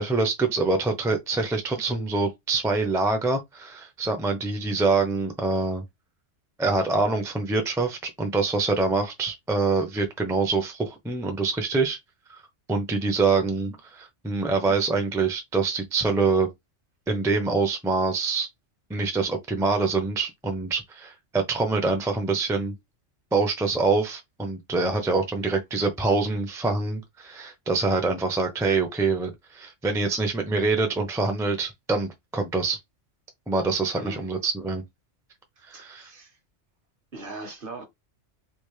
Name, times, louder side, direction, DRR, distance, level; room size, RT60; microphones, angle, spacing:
voice 1, 0.0-5.8 6.6-12.0 12.3-12.4 12.7-16.5 17.1-18.5 18.9-22.7 23.3-32.8 33.5-34.8 35.6-36.1, right 3 dB, 5° right, 0.5 m, -25 dB
voice 2, 24.9-25.5 33.9-34.3 35.7-36.4 37.1-37.8, right 2 dB, 50° right, 1.1 m, -41 dB
3.4 x 2.5 x 3.2 m
omnidirectional pair, 1.3 m